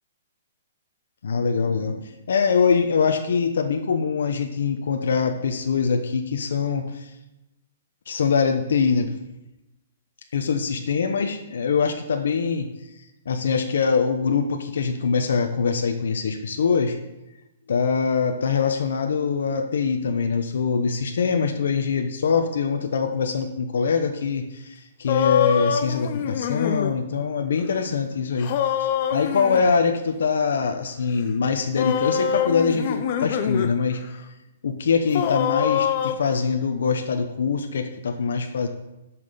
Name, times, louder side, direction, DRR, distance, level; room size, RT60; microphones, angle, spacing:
voice 1, 1.2-7.1 8.1-9.1 10.3-12.7 13.3-17.0 17.7-28.5 28.8-34.0 34.6-38.7, left 5 dB, 75° left, 5 dB, 0.9 m, -23 dB
sound 1, 25.1-26.9 28.4-29.7 31.8-33.7 34.1-34.2 35.1-36.1, left 9 dB, 40° left, 0.7 m, -24 dB
7.7 x 5.9 x 6.8 m, 0.95 s
hypercardioid pair, 165°, 0 cm